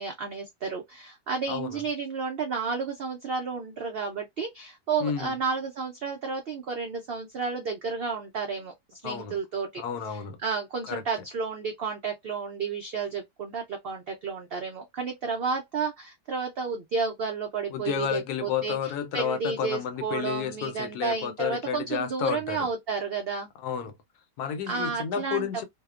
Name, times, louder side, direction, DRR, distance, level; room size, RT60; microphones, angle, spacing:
voice 1, 0.0-8.7 9.0-9.8 10.1-23.5 24.7-25.5, right 5 dB, 85° right, 0.5 m, -32 dB
voice 2, 1.5-1.8 5.0-5.4 9.0-9.4 9.8-10.4 10.9-11.0 17.7-22.7 23.6-24.0 24.4-25.6, left 8 dB, 80° left, 1.2 m, -31 dB
2.8 x 2.0 x 2.3 m
omnidirectional pair, 1.6 m